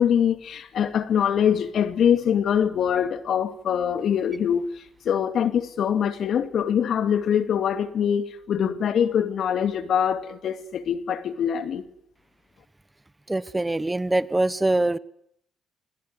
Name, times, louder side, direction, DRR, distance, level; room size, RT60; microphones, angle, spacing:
voice 1, 0.0-11.8, left 8 dB, 65° left, 2.5 m, -23 dB
voice 2, 13.3-15.0, right 2 dB, 15° right, 1.1 m, -23 dB
25.5 x 22.0 x 9.7 m
cardioid pair, 90°, 0 cm